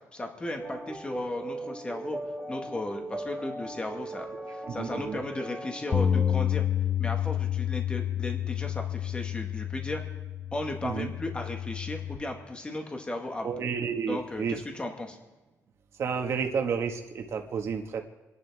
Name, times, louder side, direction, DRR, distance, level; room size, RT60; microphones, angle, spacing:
voice 1, 0.1-2.2 2.5-6.6 7.0-10.0 10.5-13.6 14.1-15.2, left 2 dB, 20° left, 3 dB, 1.8 m, -35 dB
sound 1, 0.6-6.4, right 2 dB, 10° right, 2.2 m, -38 dB
voice 2, 4.8-5.2 10.8-11.1 13.4-14.6 16.0-18.0, right 6 dB, 55° right, 3 dB, 1.8 m, -31 dB
Bass guitar, 5.9-12.2, left 9 dB, 35° left, 1.0 m, -29 dB
27.5 x 11.5 x 3.6 m, 1.2 s
cardioid pair, 125°, 6 cm